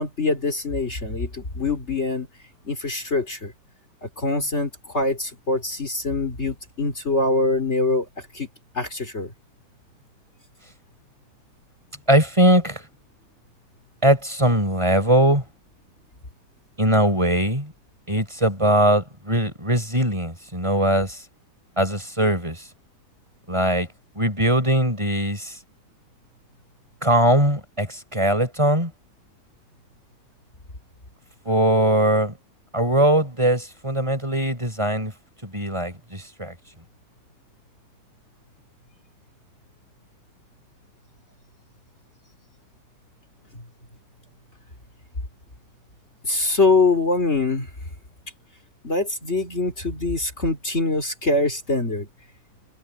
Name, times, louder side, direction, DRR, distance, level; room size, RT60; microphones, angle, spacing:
voice 1, 0.0-2.3 2.6-3.5 4.0-8.5 8.7-9.3 43.5-43.6 46.2-47.7 48.8-52.1, left 3 dB, 45° left, 3.8 m, -24 dB
voice 2, 12.1-12.8 14.0-15.4 16.8-17.7 18.1-21.2 21.8-22.6 23.5-23.9 24.2-25.6 27.0-28.9 31.5-32.3 32.7-35.1 35.4-36.5, right 1 dB, 20° right, 5.1 m, -20 dB
omnidirectional pair, 1.7 m